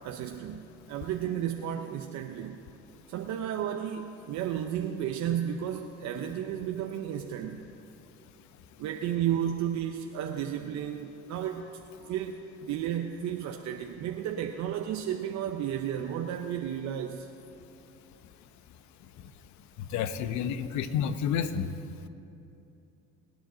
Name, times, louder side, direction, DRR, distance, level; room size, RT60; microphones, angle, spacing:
voice 1, 0.0-2.6 3.1-7.7 8.8-11.7 12.0-17.3, right 10 dB, 70° right, 4 dB, 0.8 m, -33 dB
voice 2, 19.8-21.7, left 8 dB, 70° left, 11 dB, 0.8 m, -30 dB
24.0 x 9.2 x 3.9 m, 2.8 s
supercardioid pair, 85°, 29 cm